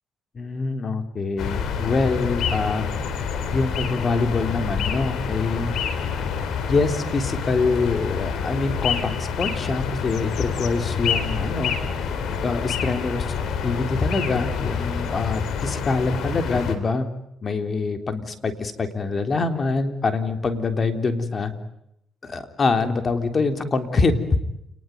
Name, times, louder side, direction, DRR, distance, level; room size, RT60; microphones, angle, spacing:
voice 1, 0.3-2.8 3.5-5.7 6.7-11.7 12.4-13.3 13.6-17.1 17.4-21.5 22.2-24.1, left 3 dB, 40° left, 8 dB, 3.5 m, -25 dB
sound 1, 1.4-16.8, left 6 dB, 75° left, 4.0 m, -27 dB
29.5 x 20.5 x 9.3 m, 0.82 s
cardioid pair, 90°, 0 cm